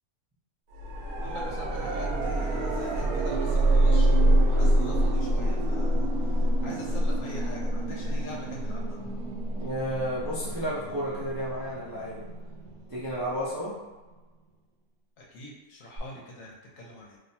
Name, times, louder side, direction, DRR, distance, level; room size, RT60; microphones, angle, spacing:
sound 1, 0.7-13.6 16.0-16.1, right 1 dB, 80° right, 1.1 m, -26 dB
voice 1, 1.2-9.0 15.2-17.2, left 1 dB, 65° left, -2 dB, 1.1 m, -43 dB
voice 2, 9.6-12.2 12.9-13.7, equal, 35° right, -9 dB, 0.3 m, -32 dB
2.7 x 2.2 x 4.1 m, 1.2 s
omnidirectional pair, 1.5 m